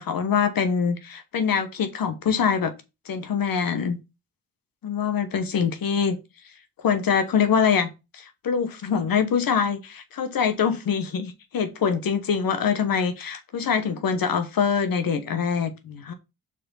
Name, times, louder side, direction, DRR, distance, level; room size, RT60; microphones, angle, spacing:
voice 1, 0.0-2.7 3.1-4.0 4.8-6.2 6.8-16.1, left 6 dB, 75° left, 1.2 m, -24 dB
6.5 x 3.6 x 5.6 m
supercardioid pair, 40°, 35 cm